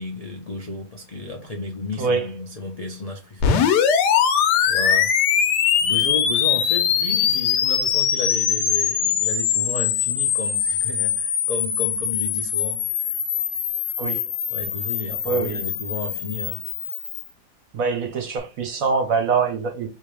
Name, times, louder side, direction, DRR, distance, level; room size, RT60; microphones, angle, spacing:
voice 1, 0.0-4.3 4.6-5.2 5.8-13.1 14.5-16.7, left 3 dB, 50° left, 0.4 m, -33 dB
voice 2, 2.0-2.3 14.0-14.2 15.2-15.7 17.7-19.9, right 5 dB, 60° right, 1.0 m, -24 dB
sound 1, 3.4-17.3, left 8 dB, 75° left, 1.2 m, -22 dB
3.6 x 2.8 x 3.2 m
omnidirectional pair, 1.8 m